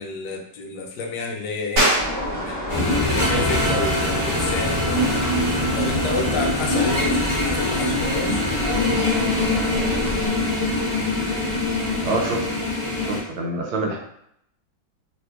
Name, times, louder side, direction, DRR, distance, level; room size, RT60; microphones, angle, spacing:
voice 1, 0.0-1.9 2.4-5.2 5.7-8.4, left 4 dB, 80° left, 2 dB, 0.9 m, -29 dB
sound 1, 1.8-12.0, right 1 dB, 65° right, 1.6 m, -31 dB
sound 2, 1.9-10.3, equal, 25° right, 1.2 m, -31 dB
sound 3, 2.7-13.2, left 1 dB, 20° left, 0.6 m, -23 dB
voice 2, 12.0-12.5 13.0-14.0, right 2 dB, 80° right, -1 dB, 1.5 m, -26 dB
3.3 x 3.0 x 2.2 m, 0.72 s
omnidirectional pair, 2.2 m